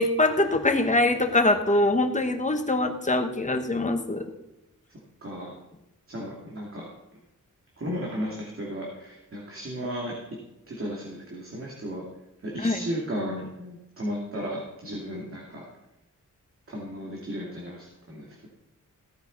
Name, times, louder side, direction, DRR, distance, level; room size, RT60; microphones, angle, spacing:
voice 1, 0.0-4.2 12.6-12.8, left 2 dB, 25° left, 6 dB, 1.3 m, -23 dB
voice 2, 5.2-5.5 6.1-6.9 7.8-10.1 10.7-12.0 12.4-15.6 16.7-18.5, equal, 40° right, -3 dB, 2.6 m, -34 dB
16.0 x 9.3 x 4.1 m, 0.94 s
wide cardioid pair, 135°, 32 cm